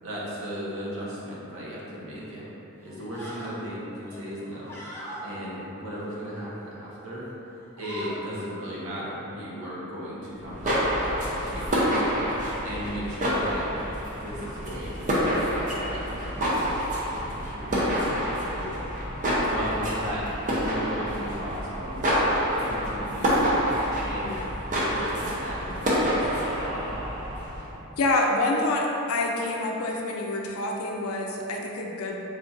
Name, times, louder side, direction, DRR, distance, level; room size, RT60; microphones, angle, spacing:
voice 1, 0.0-2.5 2.8-4.7 5.2-7.2 7.8-12.2 12.6-13.6 14.2-18.8 19.5-20.2 20.5-22.2 22.5-23.5 24.0-24.4 24.7-26.9, equal, 65° right, -7 dB, 0.9 m, -36 dB
sound 1, 2.1-2.4 2.8-3.6 4.0-5.3 5.8-6.7 7.1-7.3 7.6-8.2, right 1 dB, 10° left, 0.6 m, -42 dB
sound 2, 10.4-27.7, equal, 35° right, 0.6 m, -27 dB
voice 2, 28.0-32.2, left 2 dB, 70° left, 0 dB, 0.5 m, -27 dB
3.6 x 2.6 x 3.7 m, 3.0 s
head